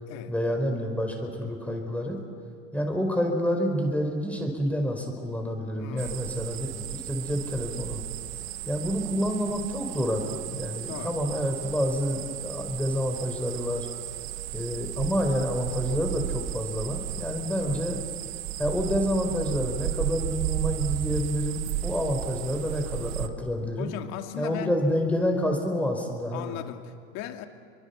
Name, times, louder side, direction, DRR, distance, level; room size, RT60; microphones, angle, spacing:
voice 1, 0.3-2.2 2.7-8.0 8.7-13.9 14.5-18.0 18.6-23.9 24.4-26.6, equal, 5° left, 3 dB, 4.8 m, -28 dB
voice 2, 5.8-6.2 10.9-11.2 17.6-17.8 23.8-24.8 26.3-27.4, left 11 dB, 55° left, 5 dB, 2.4 m, -37 dB
sound 1, 6.0-23.3, right 12 dB, 70° right, 1.6 m, -34 dB
28.0 x 24.5 x 7.1 m, 2.7 s
hypercardioid pair, 105°, 32 cm